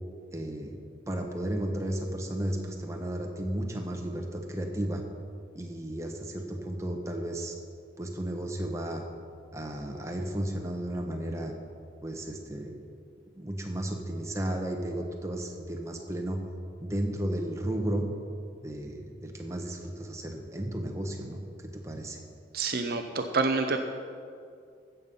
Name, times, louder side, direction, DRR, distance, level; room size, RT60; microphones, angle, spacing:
voice 1, 0.3-0.8 1.1-5.0 5.5-7.5 8.0-9.0 9.5-11.5 12.0-12.8 13.3-16.4 16.8-18.0 18.6-21.4 21.7-22.2, right 1 dB, 15° right, 2 dB, 1.1 m, -33 dB
voice 2, 22.5-23.8, right 3 dB, 55° right, 6 dB, 0.6 m, -27 dB
15.0 x 7.1 x 5.5 m, 2.3 s
head